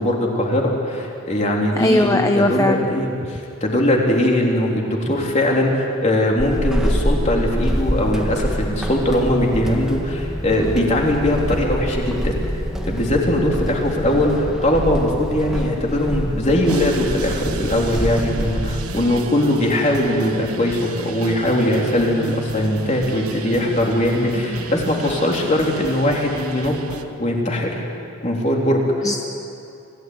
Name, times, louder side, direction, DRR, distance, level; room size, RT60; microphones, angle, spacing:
voice 1, 0.0-12.3 12.9-26.7 27.2-27.8 28.2-29.1, left 1 dB, 30° left, -1 dB, 3.5 m, -20 dB
voice 2, 1.8-2.9 29.0-29.2, left 1 dB, 15° left, 5 dB, 0.7 m, -18 dB
Walk footsteps / Squeak, 6.4-19.1, equal, 5° right, 1.5 m, -26 dB
sound 1, 16.6-27.0, right 3 dB, 85° right, 1.3 m, -33 dB
26.0 x 16.0 x 9.5 m, 2.6 s
head